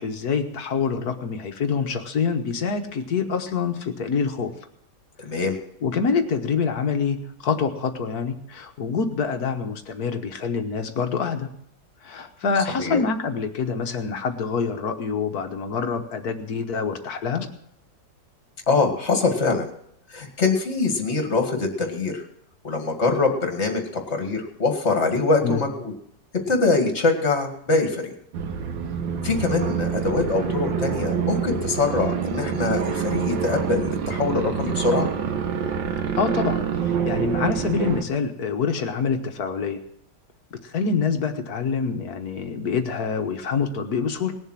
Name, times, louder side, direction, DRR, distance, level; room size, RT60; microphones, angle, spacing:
voice 1, 0.0-4.5 5.8-11.5 12.0-17.5 25.4-25.6 36.2-39.8 40.5-44.4, left 5 dB, 60° left, 7 dB, 1.6 m, -26 dB
voice 2, 5.2-5.6 12.8-13.0 18.7-19.7 20.1-22.2 22.6-25.9 26.5-28.1 29.2-35.1, left 3 dB, 35° left, 4 dB, 2.3 m, -23 dB
sound 1, 28.3-38.0, right 7 dB, 85° right, 1.8 m, -26 dB
19.0 x 7.3 x 7.4 m, 0.73 s
omnidirectional pair, 2.0 m